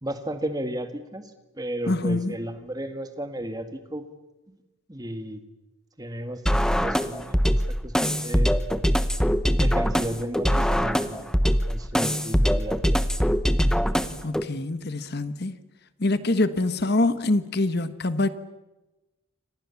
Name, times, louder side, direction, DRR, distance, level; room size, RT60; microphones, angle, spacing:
voice 1, 0.0-1.2 1.6-4.0 4.5-4.6 4.9-5.4 6.0-8.6 9.6-11.3 11.7-13.0, right 1 dB, 20° right, 2.0 m, -34 dB
voice 2, 1.9-2.3 14.2-15.6 16.0-18.3, left 2 dB, 50° left, 1.3 m, -25 dB
sound 1, 6.5-14.4, equal, 5° left, 1.0 m, -23 dB
29.5 x 25.5 x 7.2 m
head